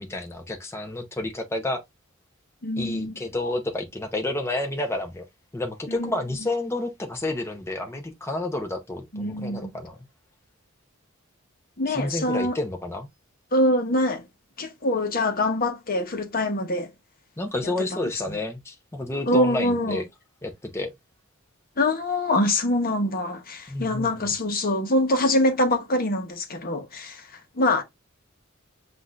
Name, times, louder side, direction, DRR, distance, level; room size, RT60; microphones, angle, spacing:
voice 1, 0.0-1.8 2.8-5.3 5.5-10.0 11.9-13.1 17.4-20.0 20.4-20.9 23.7-24.3, left 2 dB, 15° left, 0.6 m, -30 dB
voice 2, 2.6-3.2 5.9-6.1 9.1-9.7 11.8-12.6 13.5-14.2 14.6-16.9 17.6-17.7 18.0-18.4 19.3-20.0 21.8-27.8, left 1 dB, 45° left, 0.9 m, -24 dB
7.4 x 2.6 x 2.4 m
head